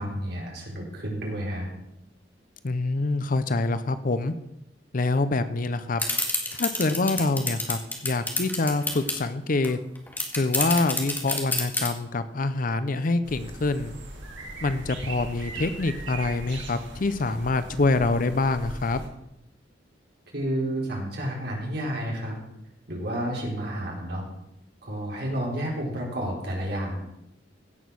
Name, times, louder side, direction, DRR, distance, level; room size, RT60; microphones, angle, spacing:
voice 1, 0.0-1.7 20.3-22.4 22.9-24.2 24.8-27.0, right 1 dB, 60° right, -1 dB, 3.9 m, -30 dB
voice 2, 2.6-4.3 4.9-6.0 6.6-9.8 10.4-13.9 14.6-19.0, left 3 dB, 45° left, 12 dB, 0.6 m, -25 dB
sound 1, 6.0-9.2 9.6-9.7 10.0-11.9, left 2 dB, 10° left, 2.0 m, -27 dB
sound 2, 13.2-19.1, right 2 dB, 80° right, 2.8 m, -39 dB
16.5 x 6.3 x 6.2 m, 0.85 s
head